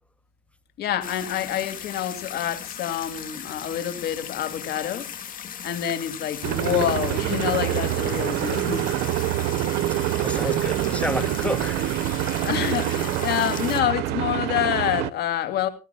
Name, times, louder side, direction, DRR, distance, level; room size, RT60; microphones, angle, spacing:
voice 1, 0.8-5.1 5.6-8.9 12.4-15.7, left 10 dB, 70° left, 2.4 m, -27 dB
sound 1, 1.0-13.8, left 8 dB, 55° left, 1.8 m, -37 dB
sound 2, 6.4-15.1, right 15 dB, 90° right, 0.6 m, -26 dB
voice 2, 10.0-12.4, left 1 dB, 5° left, 0.9 m, -31 dB
18.5 x 16.5 x 2.2 m
cardioid pair, 110°, 17 cm